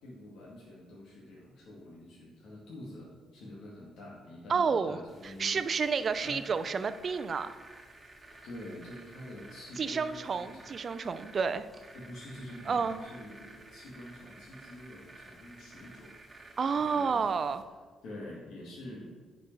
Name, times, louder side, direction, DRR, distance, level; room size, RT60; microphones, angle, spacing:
voice 1, 0.0-5.6 5.9-6.4 8.4-10.7 11.9-16.1 16.8-17.2 18.0-19.1, left 1 dB, 75° left, -6 dB, 2.1 m, -47 dB
voice 2, 4.5-7.5 9.8-11.7 12.7-13.0 16.6-17.6, right 5 dB, 45° right, 11 dB, 0.5 m, -30 dB
sound 1, 5.1-17.6, right 2 dB, 25° right, 1.8 m, -53 dB
10.5 x 5.3 x 4.6 m, 1.4 s
cardioid pair, 90°, 0 cm